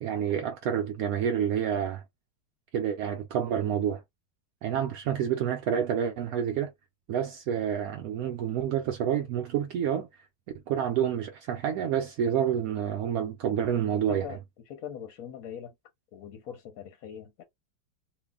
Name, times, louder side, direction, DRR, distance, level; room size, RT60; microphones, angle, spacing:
voice 1, 0.0-2.0 2.7-4.0 4.6-6.7 7.1-10.1 10.7-14.4, right 9 dB, 75° right, 0.8 m, -28 dB
voice 2, 14.1-14.4 14.7-15.7 16.1-17.4, left 8 dB, 60° left, 1.0 m, -41 dB
3.2 x 2.2 x 3.5 m
omnidirectional pair, 2.1 m